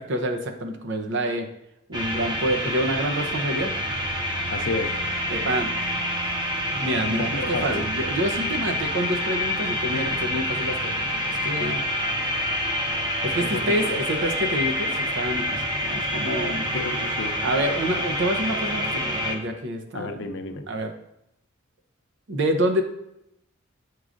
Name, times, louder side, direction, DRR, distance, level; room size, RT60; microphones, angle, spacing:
voice 1, 0.0-1.5 1.9-3.7 5.3-5.7 6.8-11.8 13.2-16.7 17.4-20.3 20.7-20.9 22.3-22.8, right 1 dB, 60° right, 5 dB, 0.7 m, -27 dB
sound 1, 1.9-19.4, equal, 20° right, 0.7 m, -27 dB
voice 2, 4.5-4.9 6.7-7.1 7.5-7.8 13.4-13.6 16.7-17.3 19.9-20.6, left 3 dB, 60° left, 7 dB, 0.6 m, -31 dB
8.2 x 4.7 x 2.5 m, 0.81 s
head